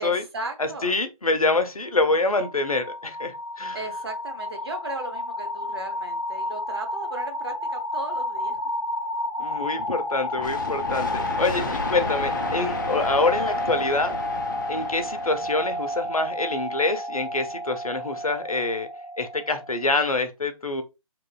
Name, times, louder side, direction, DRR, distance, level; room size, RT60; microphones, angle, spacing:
voice 1, 0.0-0.9 3.7-8.6, right 3 dB, 45° right, 0.6 m, -36 dB
voice 2, 0.6-3.8 9.4-14.1 14.7-18.9 19.2-20.8, left 3 dB, 75° left, 0.6 m, -26 dB
sound 1, 2.0-19.8, left 1 dB, 10° right, 0.9 m, -31 dB
sound 2, 10.4-16.0, left 3 dB, 35° left, 0.4 m, -33 dB
2.9 x 2.4 x 2.2 m
figure-of-eight pair, 145°, 18 cm